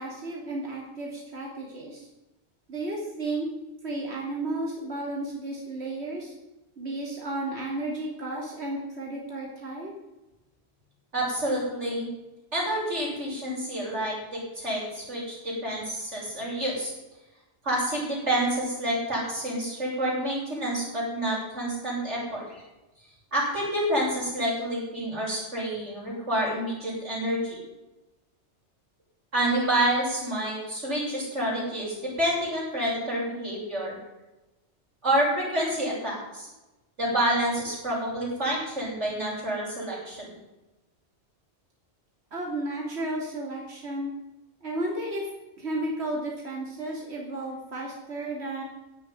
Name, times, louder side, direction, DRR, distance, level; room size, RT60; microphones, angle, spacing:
voice 1, 0.0-2.1 2.7-3.5 3.8-6.3 6.8-9.9 42.3-44.1 44.6-45.3 45.6-48.6, right 2 dB, 65° right, -2 dB, 3.1 m, -33 dB
voice 2, 11.1-12.1 12.5-16.9 17.6-22.6 23.3-27.6 29.3-33.9 35.0-36.5 37.0-40.3, right 1 dB, 90° right, -5 dB, 7.5 m, -28 dB
16.5 x 7.1 x 9.6 m, 1.0 s
omnidirectional pair, 1.2 m